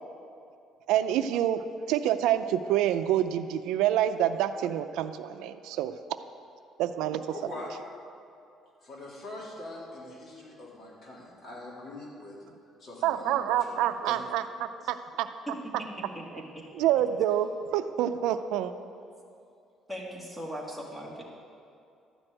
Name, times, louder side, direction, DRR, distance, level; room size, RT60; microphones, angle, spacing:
voice 1, 0.9-5.9 6.8-7.2 13.0-15.3 16.8-18.7, right 11 dB, 90° right, 10 dB, 0.5 m, -27 dB
voice 2, 7.3-7.7 8.8-12.4 12.8-14.2, left 2 dB, 40° left, -4 dB, 3.6 m, -43 dB
voice 3, 19.9-21.2, equal, ahead, -3 dB, 2.1 m, -38 dB
12.5 x 6.1 x 9.0 m, 2.6 s
cardioid pair, 125°, 0 cm